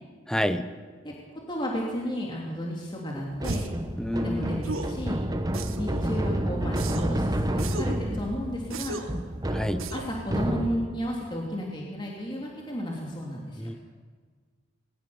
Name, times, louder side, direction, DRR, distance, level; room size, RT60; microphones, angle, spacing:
voice 1, 0.3-0.7 4.0-4.7 9.5-9.9 13.6-13.7, equal, 5° left, 10 dB, 0.9 m, -29 dB
voice 2, 1.0-3.6 4.2-5.2 5.8-9.0 9.9-13.6, equal, 25° left, -2 dB, 2.8 m, -33 dB
sound 1, 3.3-11.1, right 1 dB, 20° right, 1.0 m, -30 dB
sound 2, 3.4-3.8 4.6-5.0 5.5-6.0 6.8-7.2 7.6-8.0 8.7-9.2 9.8-10.2, right 2 dB, 85° right, 1.6 m, -35 dB
20.0 x 20.0 x 7.0 m, 1.5 s
head